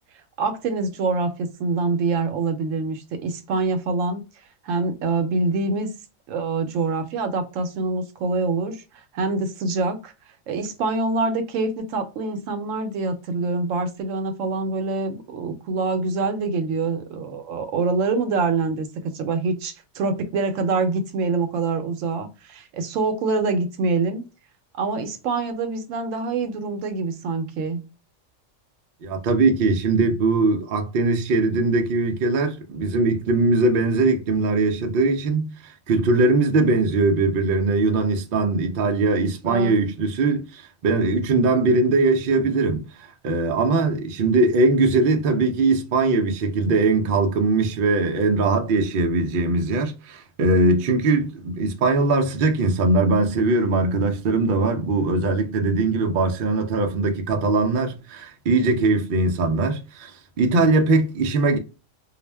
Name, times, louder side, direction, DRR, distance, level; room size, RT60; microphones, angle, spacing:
voice 1, 0.4-4.2 4.6-5.9 6.3-8.8 9.1-10.1 10.5-18.9 19.1-24.2 24.8-27.8 39.5-39.8, right 3 dB, 80° right, 0.9 m, -25 dB
voice 2, 29.0-35.5 35.9-42.8 43.2-60.1 60.4-61.6, right 3 dB, 60° right, 0.6 m, -21 dB
2.4 x 2.1 x 3.2 m
omnidirectional pair, 1.3 m